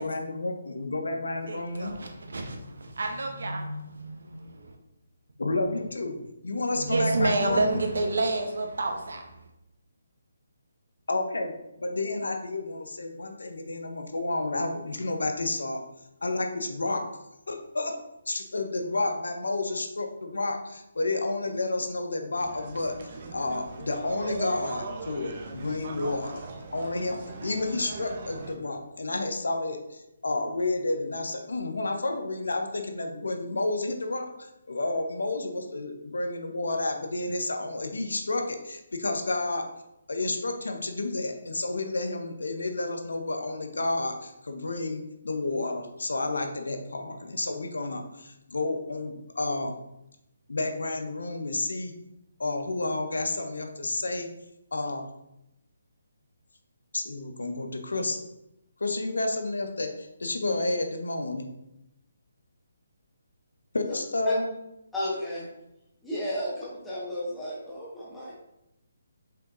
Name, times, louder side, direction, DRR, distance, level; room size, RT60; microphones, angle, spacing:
voice 1, 0.0-1.9 5.4-6.2 6.4-7.8 11.1-11.5 11.8-15.8 16.2-17.0 17.5-18.0 18.3-22.9 23.3-26.4 26.7-39.6 40.1-49.8 50.5-51.9 52.4-54.3 54.7-55.0 56.9-58.2 58.8-61.5 63.7-64.6, left 2 dB, 80° left, 5 dB, 0.7 m, -30 dB
voice 2, 1.4-4.8 6.7-9.3, right 2 dB, 70° right, 4 dB, 0.9 m, -29 dB
sound 1, 22.4-28.6, right 3 dB, 45° right, 0.6 m, -39 dB
voice 3, 64.9-65.5 66.0-68.3, left 1 dB, 5° left, -9 dB, 1.3 m, -33 dB
5.6 x 3.6 x 2.6 m, 0.87 s
figure-of-eight pair, 150°, 0 cm